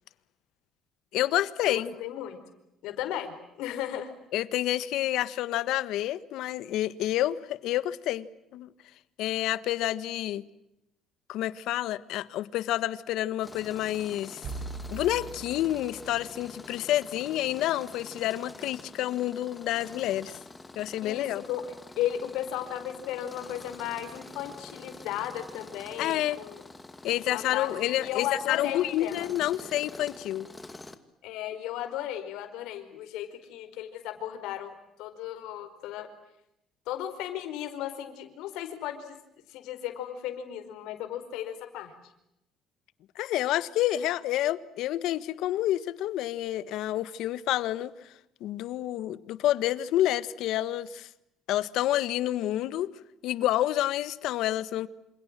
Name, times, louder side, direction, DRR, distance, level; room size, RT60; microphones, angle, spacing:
voice 1, 1.1-1.9 4.3-8.7 9.2-10.4 11.3-14.4 14.9-20.4 20.7-21.4 26.0-26.4 27.0-30.5 43.1-47.9 48.4-51.1 51.5-52.9 53.2-54.9, left 13 dB, 70° left, 1.5 m, -29 dB
voice 2, 1.6-2.4 2.8-4.1 21.0-26.6 27.3-29.3 31.2-36.1 36.9-39.2 39.5-41.9, left 11 dB, 90° left, 4.8 m, -35 dB
Tools, 13.4-31.0, left 2 dB, 10° left, 2.2 m, -47 dB
sound 1, 14.4-16.5, right 3 dB, 50° right, 6.2 m, -41 dB
28.0 x 28.0 x 7.6 m
cardioid pair, 155°, 0 cm